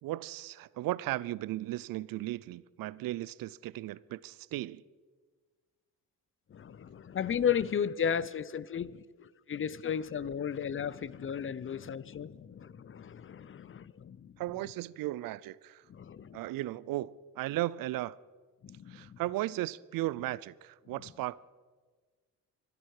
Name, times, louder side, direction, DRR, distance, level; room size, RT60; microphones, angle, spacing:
voice 1, 0.0-4.8 14.4-15.8 16.3-18.2 18.9-21.4, right 16 dB, 75° right, 0.5 m, -36 dB
voice 2, 6.5-9.0 9.5-14.3 15.9-16.4 18.6-19.1, left 8 dB, 35° left, 0.7 m, -34 dB
25.5 x 10.5 x 4.9 m
cardioid pair, 80°, 35 cm